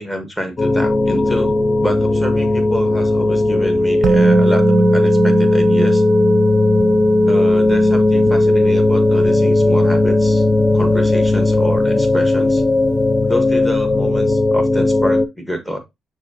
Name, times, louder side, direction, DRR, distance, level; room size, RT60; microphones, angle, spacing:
voice 1, 0.0-6.0 7.3-10.5 10.7-12.6 13.3-15.8, equal, 10° left, 1.3 m, -27 dB
sound 1, 0.6-15.3, left 2 dB, 25° left, 0.4 m, -16 dB
Musical instrument, 4.0-11.9 12.2-12.4, right 3 dB, 55° right, 0.4 m, -22 dB
6.1 x 2.7 x 2.8 m
cardioid pair, 90°, 0 cm